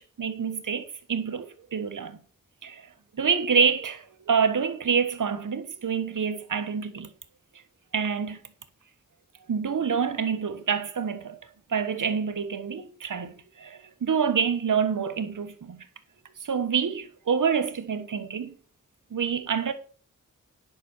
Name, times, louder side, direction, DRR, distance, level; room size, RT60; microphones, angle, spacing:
voice 1, 0.0-2.2 2.6-2.8 3.2-7.1 7.9-8.4 9.5-11.4 11.7-15.8 16.4-18.5 19.1-19.7, right 6 dB, 80° right, 1.2 m, -27 dB
10.0 x 5.8 x 6.4 m
cardioid pair, 55°, 31 cm